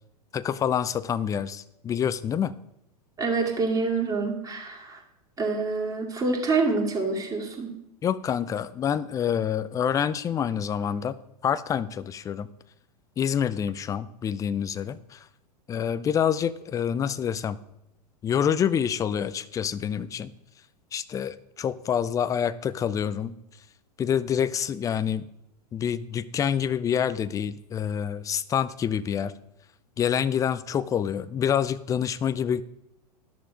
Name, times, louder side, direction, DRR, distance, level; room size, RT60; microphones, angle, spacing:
voice 1, 0.3-2.5 8.0-12.5 13.2-15.3 15.7-17.6 18.2-20.3 20.9-23.3 24.0-25.3 25.7-29.3 30.0-32.6, left 8 dB, 15° left, 17 dB, 0.4 m, -27 dB
voice 2, 3.2-5.0 5.4-7.7, right 3 dB, 15° right, 0 dB, 2.3 m, -26 dB
12.0 x 6.6 x 4.9 m, 0.83 s
figure-of-eight pair, 100°, 20 cm